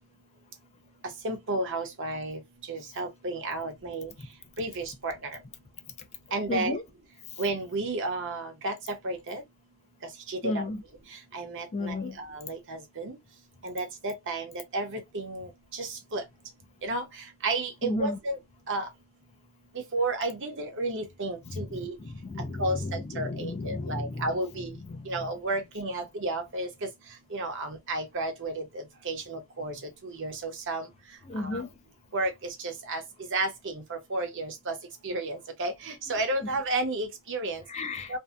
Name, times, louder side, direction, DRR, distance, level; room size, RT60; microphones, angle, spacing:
voice 1, 1.2-2.4 2.7-4.1 4.6-5.3 6.3-6.8 7.4-9.4 10.3-10.7 11.3-13.2 13.6-16.2 16.8-18.4 18.7-18.9 19.7-22.0 22.6-24.7 25.1-26.9 27.3-29.7 30.0-30.9 31.4-31.6 32.1-33.0 33.3-34.7 35.0-37.6 38.1-38.2, right 2 dB, 60° right, 0.8 m, -32 dB
voice 2, 6.5-6.8 10.4-10.8 11.7-12.2 17.8-18.2 21.5-24.4 24.9-25.3 31.2-31.7 37.7-38.2, left 2 dB, 30° left, 0.4 m, -33 dB
2.7 x 2.1 x 2.3 m
head